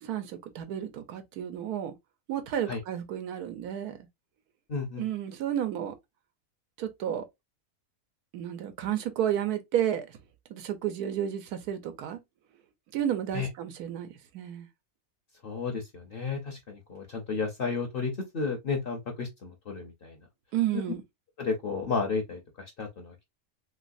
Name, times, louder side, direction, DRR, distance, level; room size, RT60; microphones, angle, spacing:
voice 1, 0.0-1.9 2.3-4.0 5.0-6.0 6.8-7.3 8.3-10.2 10.5-12.2 12.9-14.7 20.5-21.0, right 10 dB, 85° right, 1.2 m, -32 dB
voice 2, 4.7-5.0 13.3-13.5 15.4-20.2 21.4-23.2, left 4 dB, 50° left, 0.7 m, -33 dB
3.1 x 3.1 x 2.5 m
omnidirectional pair, 1.6 m